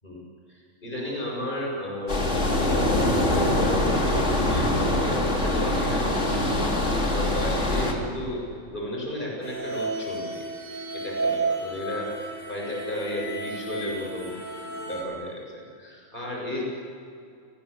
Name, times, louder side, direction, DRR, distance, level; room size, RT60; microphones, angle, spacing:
voice 1, 0.5-8.4 8.7-10.4 10.7-14.3 14.9-16.6, left 1 dB, 40° left, -2 dB, 7.6 m, -33 dB
sound 1, 2.1-7.9, left 1 dB, 60° left, 3.4 m, -23 dB
sound 2, 9.4-15.0, right 3 dB, 10° right, 5.6 m, -32 dB
29.5 x 20.0 x 8.5 m, 2.4 s
omnidirectional pair, 1.4 m